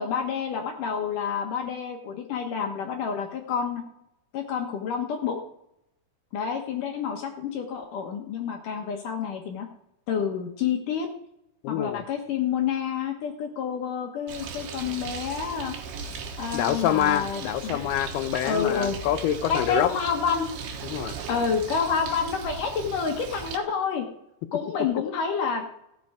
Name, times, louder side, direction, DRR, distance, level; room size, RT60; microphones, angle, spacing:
voice 1, 0.0-3.8 4.3-5.4 6.3-9.7 10.1-11.1 11.7-15.8 16.4-17.8 18.4-19.0 19.5-20.5 21.3-24.1 24.5-25.7, left 6 dB, 65° left, 3 dB, 2.5 m, -28 dB
voice 2, 11.6-12.0 16.5-19.9 20.8-21.2, left 12 dB, 85° left, 12 dB, 2.7 m, -26 dB
Bird, 14.3-23.6, right 6 dB, 80° right, 3.2 m, -37 dB
15.0 x 7.6 x 4.9 m, 0.79 s
omnidirectional pair, 4.5 m